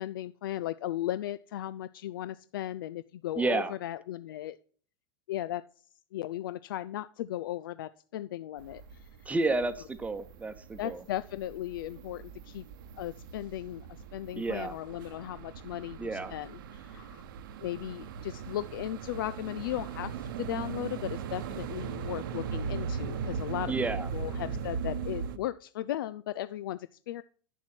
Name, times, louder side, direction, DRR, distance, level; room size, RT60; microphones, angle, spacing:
voice 1, 0.0-4.6 5.3-5.6 6.1-9.1 10.8-12.6 13.0-13.9 14.1-17.2 17.6-23.7 24.1-27.2, left 13 dB, 65° left, 15 dB, 0.4 m, -36 dB
voice 2, 3.4-3.7 9.2-11.0 14.3-14.8 16.0-16.3 23.7-24.6, right 3 dB, 10° right, 12 dB, 1.0 m, -31 dB
sound 1, 8.6-25.4, right 6 dB, 60° right, 0.9 m, -39 dB
10.0 x 7.2 x 4.4 m, 0.43 s
figure-of-eight pair, 90°, 12 cm